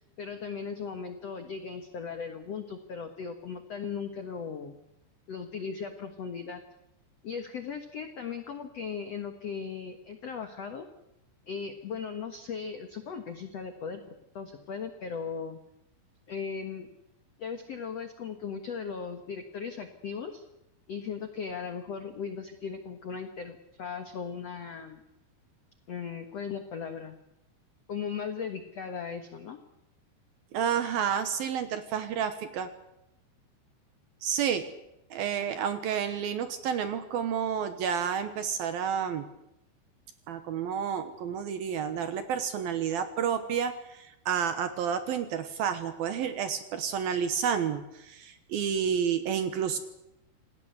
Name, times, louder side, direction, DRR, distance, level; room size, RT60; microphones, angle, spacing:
voice 1, 0.2-4.8 5.3-6.6 7.2-10.8 11.5-14.0 14.3-15.6 16.3-16.9 17.4-20.4 20.9-25.0 25.9-27.2 27.9-29.6, left 6 dB, 75° left, 7 dB, 1.4 m, -37 dB
voice 2, 30.5-32.7 34.2-34.6 35.1-39.3 40.3-49.8, right 8 dB, 70° right, 10 dB, 2.5 m, -30 dB
27.5 x 18.5 x 8.0 m, 0.86 s
omnidirectional pair, 5.4 m